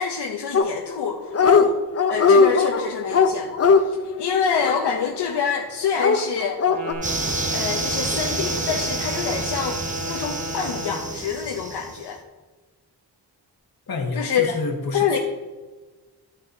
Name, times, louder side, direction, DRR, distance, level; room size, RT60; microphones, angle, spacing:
voice 1, 0.0-1.8 2.1-6.6 7.5-12.2 14.2-14.6 14.9-15.2, left 7 dB, 85° left, 2 dB, 0.7 m, -26 dB
Dog, 0.5-1.0 1.3-1.7 2.0-5.4 6.0-6.9, left 5 dB, 40° left, 0.5 m, -19 dB
Wind instrument woodwind instrument, 6.7-11.3, right 2 dB, 85° right, 1.1 m, -33 dB
sound 1, 7.0-12.0, right 2 dB, 20° right, 0.8 m, -29 dB
voice 2, 13.9-15.2, left 3 dB, 65° left, 2 dB, 1.5 m, -29 dB
12.0 x 6.7 x 2.7 m, 1.3 s
wide cardioid pair, 115°, 40 cm